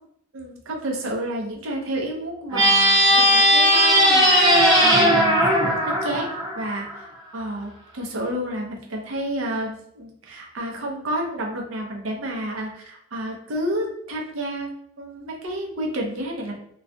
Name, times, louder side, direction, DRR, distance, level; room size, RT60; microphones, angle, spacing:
voice 1, 0.3-5.4 5.8-14.7 15.0-16.5, right 1 dB, 75° right, 0 dB, 0.6 m, -30 dB
sound 1, 2.5-7.0, equal, 20° right, 0.6 m, -17 dB
2.3 x 2.1 x 2.6 m, 0.71 s
head